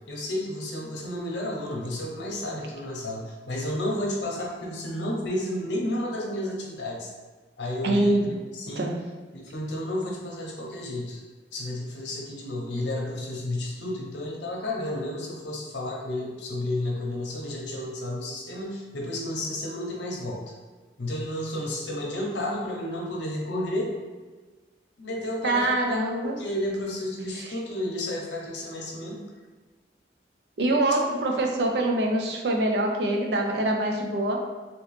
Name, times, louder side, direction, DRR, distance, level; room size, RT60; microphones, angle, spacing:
voice 1, 0.1-7.1 7.6-8.9 9.3-11.2 11.5-20.4 21.0-23.9 25.0-26.0 26.2-29.3, left 1 dB, 80° left, -2 dB, 0.7 m, -31 dB
voice 2, 7.8-8.3 8.8-9.0 25.4-26.4 30.6-34.4, right 1 dB, 70° right, 1 dB, 0.5 m, -24 dB
3.0 x 2.9 x 3.2 m, 1.3 s
head